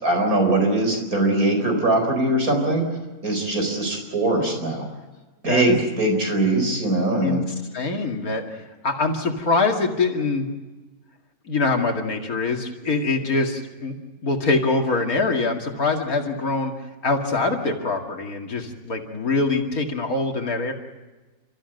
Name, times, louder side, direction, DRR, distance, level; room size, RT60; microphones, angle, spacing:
voice 1, 0.0-2.9 3.2-4.9 5.4-7.4, right 2 dB, 80° right, 3 dB, 4.8 m, -21 dB
voice 2, 7.7-8.4 8.8-10.5 11.5-13.9 14.2-16.7 17.0-20.7, left 3 dB, 80° left, 3 dB, 2.8 m, -23 dB
30.0 x 14.5 x 7.8 m, 1.2 s
omnidirectional pair, 1.5 m